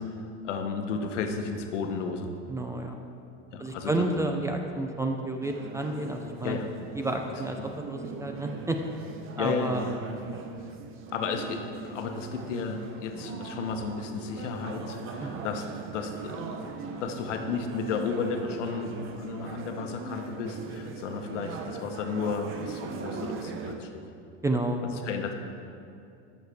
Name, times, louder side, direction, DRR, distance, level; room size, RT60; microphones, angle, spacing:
voice 1, 0.0-2.3 3.5-4.2 6.4-6.7 9.4-10.0 11.1-15.7 15.9-24.0 24.8-25.3, left 5 dB, 90° left, 5 dB, 1.0 m, -33 dB
voice 2, 2.5-2.9 3.6-6.6 7.0-8.8 9.4-10.5 15.2-15.4 24.4-25.1, right 2 dB, 10° right, 4 dB, 0.4 m, -31 dB
sound 1, 5.4-23.8, right 5 dB, 35° right, 0.8 m, -40 dB
12.5 x 6.5 x 3.4 m, 2.6 s
supercardioid pair, 120°, 35 cm